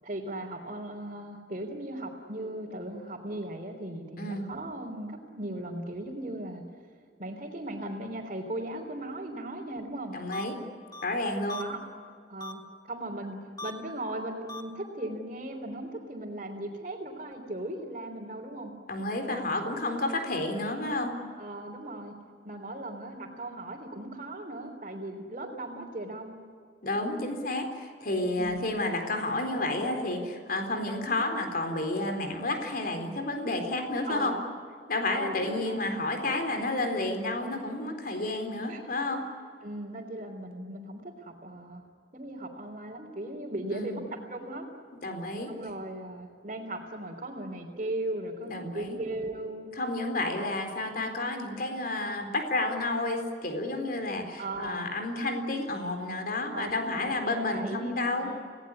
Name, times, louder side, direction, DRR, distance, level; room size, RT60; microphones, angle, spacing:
voice 1, 0.0-6.6 7.2-10.2 11.6-11.8 12.3-12.6 12.9-18.7 21.4-22.2 22.4-26.3 28.4-28.7 34.1-34.4 35.1-35.8 38.2-38.3 38.7-38.8 39.6-41.8 42.1-44.7 45.5-49.7 54.4-54.9 56.5-58.4, right 1 dB, 40° right, -4 dB, 3.5 m, -38 dB
voice 2, 10.1-10.6 11.0-11.6 18.9-21.2 26.8-34.3 34.9-39.2 43.7-44.0 45.0-45.5 48.5-49.0 49.8-58.3, left 2 dB, 55° left, 5 dB, 4.1 m, -31 dB
sound 1, 10.3-10.4 10.9-11.0 11.5-11.6 12.4-12.5 13.6-13.7 14.5-14.6, left 2 dB, 20° left, 2.4 m, -38 dB
29.0 x 18.5 x 9.8 m, 2.2 s
head